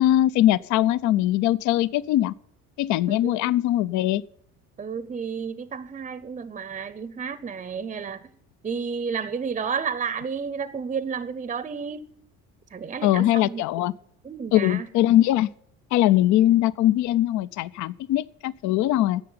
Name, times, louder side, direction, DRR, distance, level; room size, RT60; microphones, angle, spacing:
voice 1, 0.0-2.3 2.8-4.2 13.0-13.9 14.5-15.5 15.9-19.2, left 13 dB, 60° left, 0.5 m, -21 dB
voice 2, 3.1-3.5 4.8-8.3 8.6-12.1 12.7-13.6 14.2-14.9, right 6 dB, 20° right, 0.6 m, -31 dB
10.5 x 7.7 x 8.6 m
cardioid pair, 100°, 33 cm